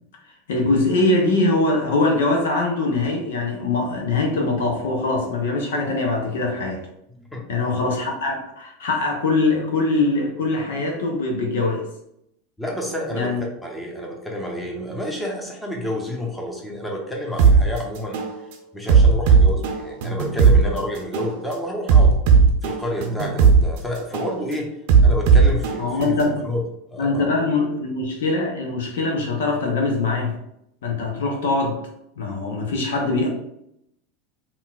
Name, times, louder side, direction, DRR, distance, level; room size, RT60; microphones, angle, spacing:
voice 1, 0.5-6.8 7.5-11.9 13.1-13.4 25.8-26.4 27.0-30.4 30.8-31.8 32.2-33.3, left 2 dB, 65° left, 2 dB, 0.7 m, -22 dB
voice 2, 7.1-7.6 12.6-13.3 13.6-18.2 18.7-22.2 22.6-24.7 25.0-26.1 26.4-26.6 26.9-27.3, left 1 dB, 10° left, -1 dB, 0.9 m, -29 dB
sound 1, 17.4-17.6 18.1-18.3 18.9-20.6 21.1-21.3 21.9-23.6 24.1-24.3 24.9-26.4, right 5 dB, 55° right, 0.6 m, -15 dB
5.5 x 2.3 x 2.3 m, 0.78 s
figure-of-eight pair, 80°, 0 cm